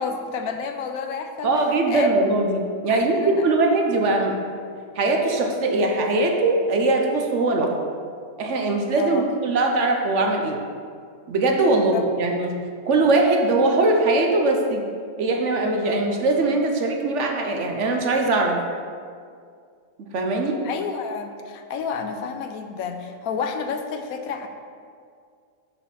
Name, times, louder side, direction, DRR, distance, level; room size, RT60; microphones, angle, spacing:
voice 1, 0.0-1.5 1.9-2.1 2.9-3.5 9.0-9.3 11.9-12.0 20.6-24.5, left 6 dB, 80° left, 6 dB, 1.1 m, -30 dB
voice 2, 1.4-4.4 5.0-7.7 8.4-10.6 11.3-12.6 12.9-14.8 15.2-18.6 20.1-20.6, right 2 dB, 60° right, 2 dB, 1.0 m, -21 dB
6.4 x 5.6 x 5.5 m, 2.2 s
omnidirectional pair, 1.5 m